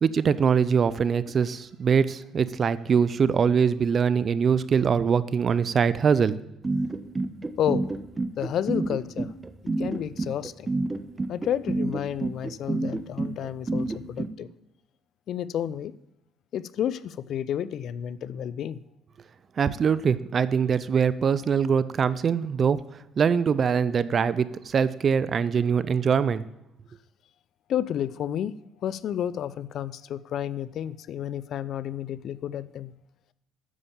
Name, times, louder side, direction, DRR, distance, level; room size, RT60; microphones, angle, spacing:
voice 1, 0.0-6.4 19.6-22.8 23.2-26.4, right 6 dB, 45° right, 16 dB, 0.5 m, -23 dB
sound 1, 6.6-14.3, right 2 dB, 20° right, 0.9 m, -28 dB
voice 2, 7.6-7.9 8.4-9.3 9.6-10.7 11.3-14.5 15.3-15.9 16.5-18.8 27.7-28.5 28.8-32.9, left 10 dB, 65° left, 18 dB, 0.5 m, -31 dB
9.9 x 7.0 x 7.1 m, 0.86 s
supercardioid pair, 75°, 0 cm